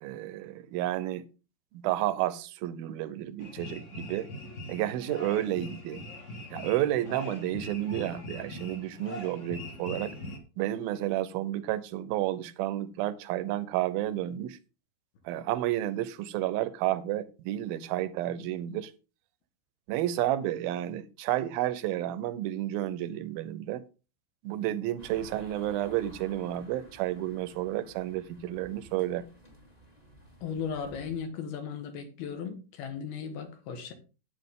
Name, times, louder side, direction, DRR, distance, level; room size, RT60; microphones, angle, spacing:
voice 1, 0.0-1.2 1.7-4.3 4.7-6.0 6.5-10.2 10.6-14.6 15.3-18.9 19.9-23.8 24.4-29.2, right 13 dB, 80° right, 2.4 m, -31 dB
sound 1, 3.4-10.4, left 1 dB, 55° left, 0.8 m, -42 dB
sound 2, 25.0-31.3, right 1 dB, 15° left, 1.5 m, -53 dB
voice 2, 30.4-33.9, left 6 dB, 75° left, 3.4 m, -36 dB
10.0 x 8.8 x 3.7 m
omnidirectional pair, 4.5 m